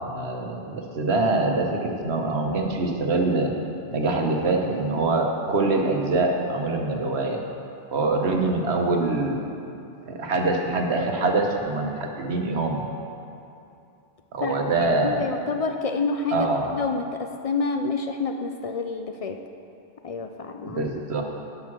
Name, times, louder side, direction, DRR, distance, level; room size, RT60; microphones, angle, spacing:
voice 1, 0.0-3.5 3.9-7.4 7.9-9.4 10.1-12.9 14.3-15.2 16.3-16.7 20.7-21.2, right 3 dB, 85° right, 2 dB, 1.3 m, -24 dB
voice 2, 14.4-19.4 20.0-20.9, left 4 dB, 55° left, 5 dB, 0.4 m, -28 dB
10.5 x 5.6 x 6.1 m, 2.7 s
omnidirectional pair, 1.1 m